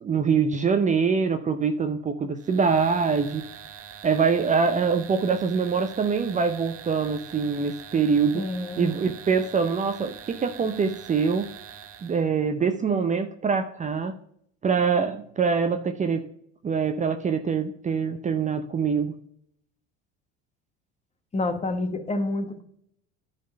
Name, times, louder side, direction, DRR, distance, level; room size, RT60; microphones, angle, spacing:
voice 1, 0.0-3.4 4.0-8.5 8.8-11.5 12.0-14.2 14.6-16.2 16.6-19.1, right 5 dB, 25° right, 8 dB, 0.6 m, -24 dB
sound 1, 2.4-12.3, right 8 dB, 45° right, 1.0 m, -44 dB
voice 2, 8.4-9.0 21.3-22.6, left 2 dB, 20° left, 8 dB, 1.2 m, -28 dB
10.0 x 4.1 x 5.3 m, 0.70 s
supercardioid pair, 100°, 31 cm